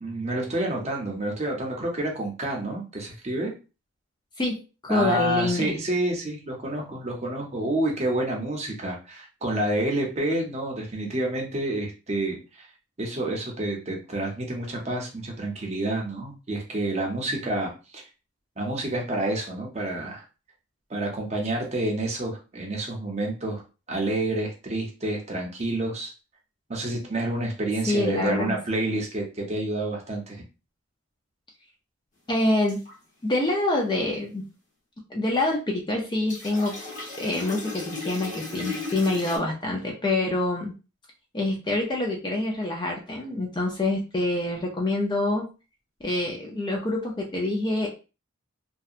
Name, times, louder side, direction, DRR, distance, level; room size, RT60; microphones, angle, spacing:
voice 1, 0.0-3.5 4.9-12.7 13.0-18.0 18.6-20.2 20.9-23.6 23.9-26.1 26.7-30.4, right 1 dB, 30° right, 0 dB, 0.6 m, -29 dB
voice 2, 4.4-5.8 27.9-28.5 32.3-32.8 33.2-34.4 35.1-36.8 37.2-40.7 41.3-45.5 46.0-47.9, left 2 dB, 20° left, 0 dB, 0.4 m, -26 dB
sound 1, 32.7-32.9 36.3-39.4, left 3 dB, 35° left, 0.8 m, -36 dB
2.7 x 2.1 x 2.4 m, 0.32 s
head